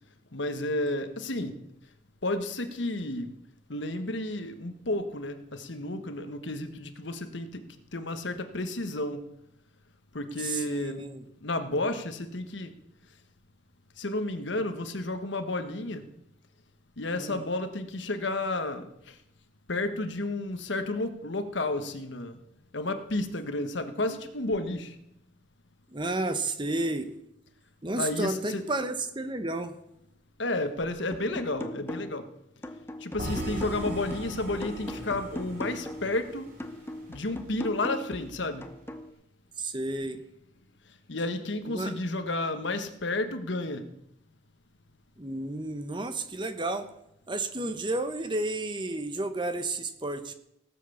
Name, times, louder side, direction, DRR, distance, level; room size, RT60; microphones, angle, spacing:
voice 1, 0.3-1.6 2.2-3.3 3.7-9.2 10.1-11.0 11.4-12.7 14.0-16.1 17.0-18.9 19.7-22.4 22.7-24.9 28.0-28.6 30.4-32.3 33.0-36.5 37.1-38.6 41.1-43.8, left 2 dB, 70° left, 1.3 m, -31 dB
voice 2, 10.4-11.2 17.1-17.4 25.9-27.1 27.8-29.7 39.6-40.2 41.6-41.9 45.2-46.9 47.3-50.3, right 2 dB, 25° right, 1.0 m, -32 dB
sound 1, 31.1-32.3 32.6-36.2 36.6-39.1, left 1 dB, 10° left, 0.8 m, -39 dB
sound 2, 33.2-37.3, right 1 dB, 45° right, 3.8 m, -39 dB
17.5 x 7.7 x 7.1 m
head